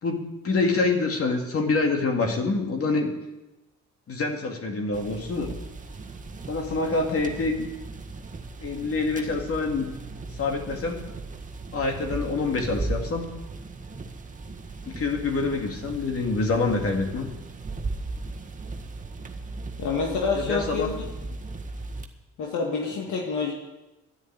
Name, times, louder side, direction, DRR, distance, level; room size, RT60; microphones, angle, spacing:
voice 1, 0.0-3.1 4.1-5.5 6.5-7.7 8.6-9.9 10.4-11.0 11.7-13.3 14.8-17.3 20.3-21.0, left 3 dB, 50° left, 3 dB, 2.6 m, -26 dB
sound 1, 4.9-22.0, right 3 dB, 25° right, 1.6 m, -37 dB
voice 2, 19.8-20.9 22.4-23.5, left 5 dB, 80° left, 0 dB, 2.0 m, -27 dB
11.5 x 9.9 x 8.9 m, 1.0 s
cardioid pair, 90°, 30 cm